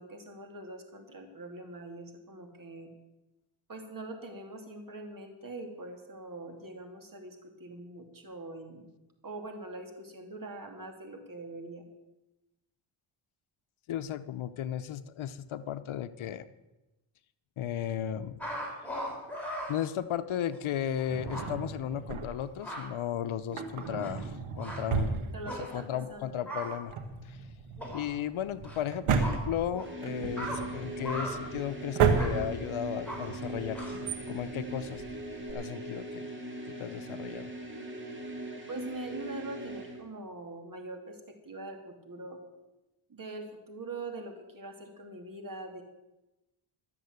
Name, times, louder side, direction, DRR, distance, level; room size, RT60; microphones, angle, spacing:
voice 1, 0.0-2.9 3.7-8.9 9.2-11.8 25.3-26.4 38.7-41.2 41.4-42.4 43.1-45.8, right 2 dB, 40° right, 4 dB, 2.9 m, -43 dB
voice 2, 13.9-16.5 17.6-18.4 19.7-25.2 25.7-26.9 27.2-27.5 27.9-33.8 34.3-35.0 35.4-36.3 36.7-37.5, left 10 dB, 70° left, 13 dB, 0.8 m, -35 dB
sound 1, 18.4-19.7 20.5-20.6 21.0-21.1 21.3-21.5 22.4-22.8 23.5-24.3 24.6-24.8 25.5-25.7 26.5-26.7 27.8-28.1 28.6-28.8 29.2-29.4 29.7-29.9 30.4-30.6 31.0-31.4 32.2-32.3 33.1-33.2 33.8-34.0, equal, 5° left, 5.8 m, -38 dB
Drawer open or close, 21.1-22.6 23.4-25.9 26.2-26.3 26.8-35.5, right 6 dB, 85° right, 1.4 m, -33 dB
sound 2, 29.7-40.0, right 1 dB, 25° right, 3.1 m, -40 dB
13.0 x 7.7 x 8.0 m, 1.0 s
cardioid pair, 70°, 49 cm